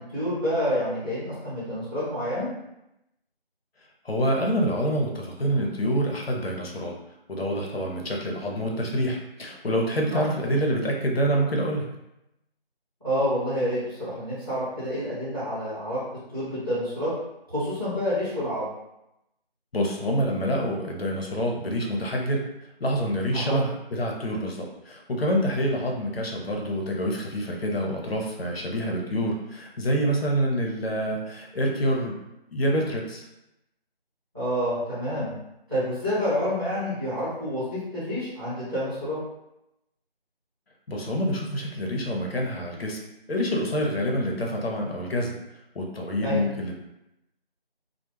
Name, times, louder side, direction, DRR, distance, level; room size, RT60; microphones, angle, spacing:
voice 1, 0.0-2.5 10.1-10.2 13.0-16.0 16.3-17.1 17.5-18.7 23.3-23.6 34.3-35.3 35.7-39.2 46.2-46.4, equal, 25° right, -13 dB, 1.0 m, -28 dB
voice 2, 4.0-6.9 7.3-11.9 19.7-22.4 22.8-32.2 32.5-33.3 40.9-43.0 43.3-45.3 45.7-46.8, equal, 75° left, 0 dB, 0.7 m, -27 dB
2.3 x 2.0 x 3.1 m, 0.88 s
figure-of-eight pair, 175°, 30 cm